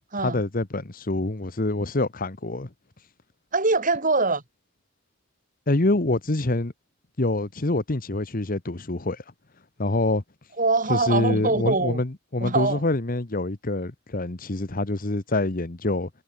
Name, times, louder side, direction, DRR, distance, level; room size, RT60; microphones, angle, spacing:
voice 1, 0.2-2.7 5.7-6.7 7.2-9.2 9.8-10.2 10.9-16.1, left 2 dB, 45° left, 1.3 m, -26 dB
voice 2, 3.5-4.4 10.6-12.0 12.4-12.8, right 3 dB, 40° right, 5.0 m, -23 dB
head